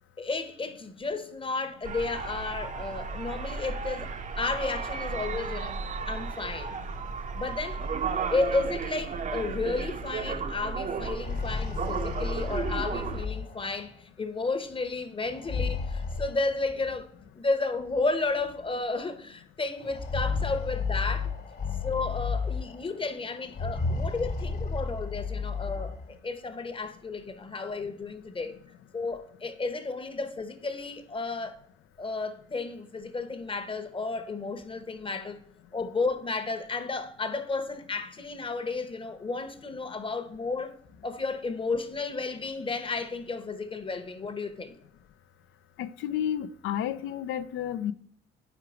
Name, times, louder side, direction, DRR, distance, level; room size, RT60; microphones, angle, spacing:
voice 1, 0.2-4.1 4.4-5.8 6.1-6.8 7.3-7.8 8.3-17.1 17.3-21.3 21.8-28.5 28.9-31.6 32.0-35.4 35.7-40.7 41.0-44.7, left 3 dB, 25° left, 0.9 m, -32 dB
sound 1, 1.8-13.2, right 5 dB, 40° right, 0.6 m, -34 dB
sound 2, 11.1-13.9 15.3-17.0 18.0-18.1 18.4-18.5 19.8-22.9 23.5-26.1, left 4 dB, 50° left, 1.3 m, -32 dB
voice 2, 45.8-47.9, left 10 dB, 85° left, 0.5 m, -31 dB
4.8 x 4.5 x 5.0 m
cardioid pair, 90°, 20 cm